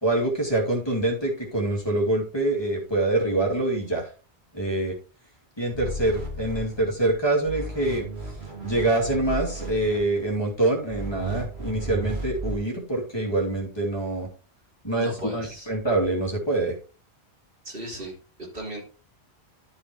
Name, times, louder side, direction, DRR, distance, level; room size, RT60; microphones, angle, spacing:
voice 1, 0.0-4.1 4.5-4.9 5.6-8.1 8.6-14.3 14.8-16.8, right 2 dB, 25° left, -1 dB, 3.0 m, -25 dB
sound 1, 5.7-7.1 7.4-10.3 10.9-12.6, right 2 dB, 80° right, 3.4 m, -34 dB
voice 2, 15.0-15.7 17.6-18.8, equal, 60° right, -1 dB, 3.2 m, -36 dB
13.0 x 5.7 x 3.2 m, 0.35 s
omnidirectional pair, 1.1 m